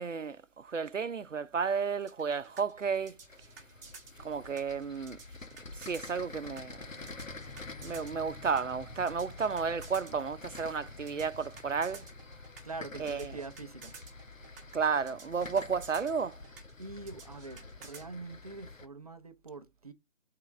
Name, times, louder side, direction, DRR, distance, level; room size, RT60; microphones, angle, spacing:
voice 1, 0.0-3.2 4.2-5.2 5.7-6.9 7.8-12.1 13.0-13.4 14.7-16.4, right 5 dB, 70° right, 0.8 m, -32 dB
sound 1, 2.1-18.1, right 4 dB, 15° right, 1.4 m, -52 dB
sound 2, 2.3-18.9, left 3 dB, 80° left, 1.2 m, -48 dB
voice 2, 12.6-13.9 16.8-19.9, right 3 dB, 30° right, 0.7 m, -44 dB
8.0 x 3.8 x 3.4 m
figure-of-eight pair, 150°, 38 cm